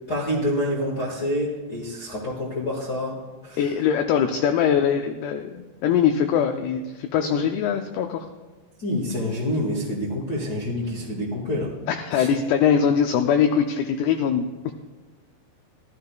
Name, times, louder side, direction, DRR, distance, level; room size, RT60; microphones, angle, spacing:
voice 1, 0.1-3.1 3.4-3.6 7.2-7.4 8.8-11.7 12.1-12.3, left 1 dB, 60° left, -6 dB, 1.0 m, -27 dB
voice 2, 3.6-8.3 11.9-14.5, left 8 dB, 80° left, 4 dB, 2.4 m, -22 dB
15.0 x 12.5 x 2.3 m, 1.3 s
omnidirectional pair, 4.9 m